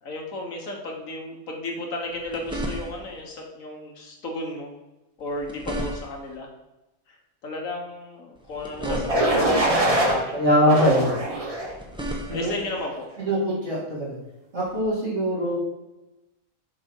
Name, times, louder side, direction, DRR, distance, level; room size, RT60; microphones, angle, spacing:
voice 1, 0.0-4.7 5.2-6.5 7.1-7.2 7.4-10.8 11.3-11.5 12.3-13.1, left 2 dB, 75° left, 1 dB, 1.6 m, -34 dB
sound 1, 2.0-3.2 5.2-6.4 8.4-9.5 11.5-12.7 14.7-14.8, right 1 dB, 5° right, 0.9 m, -34 dB
sound 2, 9.1-10.2 10.7-11.7 12.3-12.7, right 1 dB, 25° right, 1.1 m, -23 dB
voice 2, 10.3-11.0 12.3-12.5 13.2-14.1 14.5-15.6, equal, 55° right, -7 dB, 3.0 m, -22 dB
6.9 x 5.1 x 4.5 m, 1.0 s
omnidirectional pair, 1.4 m